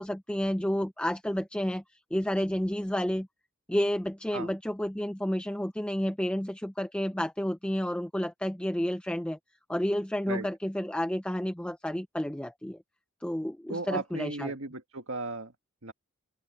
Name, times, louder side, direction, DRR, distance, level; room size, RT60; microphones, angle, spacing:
voice 1, 0.0-1.8 2.1-3.3 3.7-9.4 9.7-12.8 13.2-14.5, equal, 5° left, 0.5 m, -30 dB
voice 2, 13.7-15.5 15.8-15.9, right 3 dB, 65° right, 1.7 m, -35 dB
open air
head